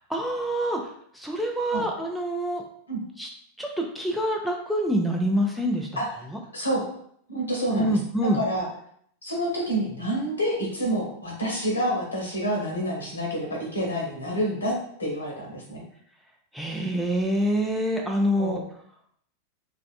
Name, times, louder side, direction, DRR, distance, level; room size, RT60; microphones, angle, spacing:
voice 1, 0.1-2.6 3.2-3.3 3.6-5.9 7.7-8.4 16.5-18.6, equal, ahead, 0 dB, 0.4 m, -26 dB
voice 2, 6.5-6.8 7.3-8.7 9.2-15.8 18.3-18.6, equal, 75° left, -1 dB, 0.9 m, -28 dB
3.3 x 2.5 x 2.4 m, 0.65 s
figure-of-eight pair, 90°, 0 cm